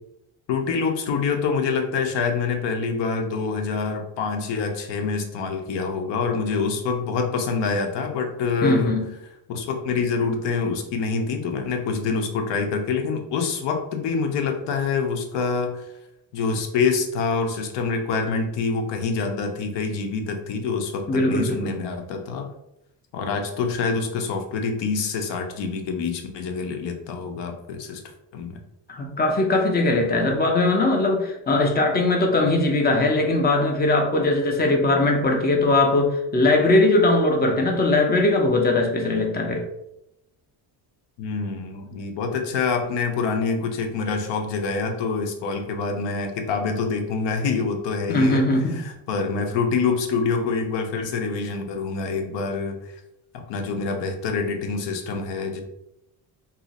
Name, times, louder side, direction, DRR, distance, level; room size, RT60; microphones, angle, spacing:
voice 1, 0.5-8.9 9.5-15.8 16.3-22.5 23.1-28.0 28.3-28.6 37.5-37.7 41.2-52.9 53.5-55.6, left 4 dB, 75° left, 4 dB, 0.7 m, -26 dB
voice 2, 8.6-9.1 21.1-21.7 28.9-39.6 48.1-48.8, left 2 dB, 25° left, 3 dB, 0.4 m, -20 dB
2.7 x 2.4 x 3.9 m, 0.83 s
cardioid pair, 160°, 42 cm